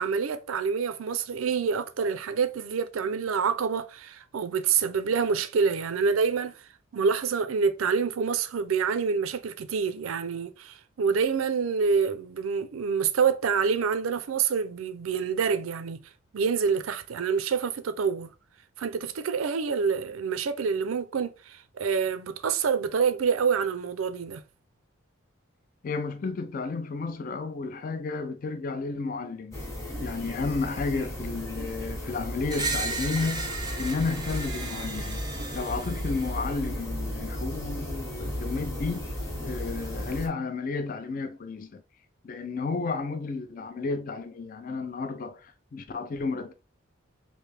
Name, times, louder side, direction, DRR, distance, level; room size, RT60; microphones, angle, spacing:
voice 1, 0.0-6.5 6.9-16.0 16.3-18.3 18.8-24.4, right 6 dB, 80° right, 0.4 m, -27 dB
voice 2, 25.8-29.6 30.0-33.5 33.8-35.2 35.5-39.1 39.4-41.8 42.2-46.5, left 4 dB, 40° left, 0.3 m, -32 dB
sound 1, 29.5-40.3, left 1 dB, 15° left, 0.9 m, -35 dB
Screech, 32.5-36.5, right 3 dB, 20° right, 0.5 m, -35 dB
3.2 x 2.6 x 3.3 m
head